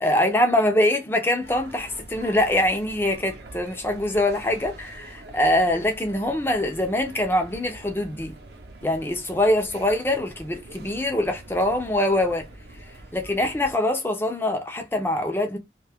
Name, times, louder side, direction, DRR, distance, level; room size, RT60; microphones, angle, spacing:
voice 1, 0.0-8.3 8.8-12.5 12.8-15.6, left 1 dB, 15° left, 0.5 m, -23 dB
sound 1, 1.4-13.7, right 2 dB, 65° right, 0.7 m, -45 dB
2.6 x 2.3 x 3.4 m
head